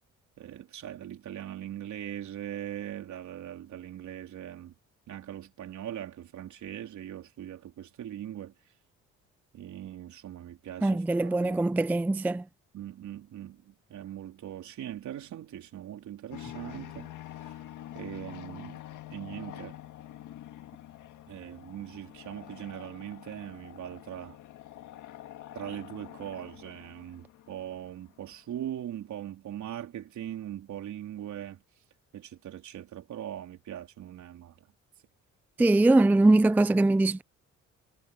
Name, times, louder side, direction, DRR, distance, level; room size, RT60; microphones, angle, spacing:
voice 1, 0.4-4.7 5.1-8.5 9.5-11.6 12.7-17.5 17.9-18.8 19.1-19.8 21.3-24.4 25.5-31.6 32.1-34.7, right 11 dB, 70° right, 3.8 m, -41 dB
voice 2, 10.8-12.4 35.6-37.2, right 2 dB, 5° right, 0.3 m, -22 dB
sound 1, 16.3-28.4, left 13 dB, 80° left, 1.8 m, -46 dB
cardioid pair, 90°, 30 cm